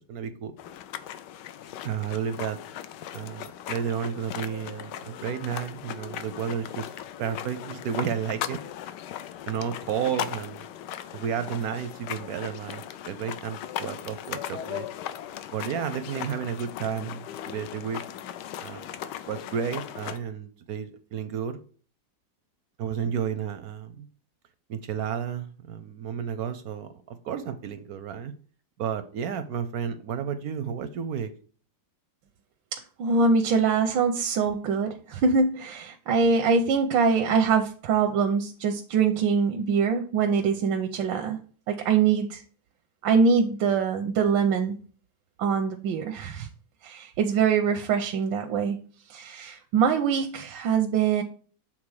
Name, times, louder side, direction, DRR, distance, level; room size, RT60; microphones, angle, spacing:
voice 1, 0.1-0.5 1.8-2.6 3.1-6.9 7.2-8.6 9.5-10.6 11.1-14.8 15.5-17.2 17.5-18.0 18.6-18.9 19.3-21.6 22.8-24.1 24.7-28.3 28.8-31.3, right 8 dB, 70° right, 10 dB, 0.9 m, -32 dB
sound 1, 0.6-20.2, left 11 dB, 75° left, 1.1 m, -38 dB
voice 2, 32.7-41.4 41.7-42.4 43.0-44.8 45.4-46.5 46.8-48.8 49.1-51.2, right 5 dB, 90° right, 5 dB, 1.4 m, -24 dB
7.5 x 3.7 x 4.8 m, 0.42 s
omnidirectional pair, 2.0 m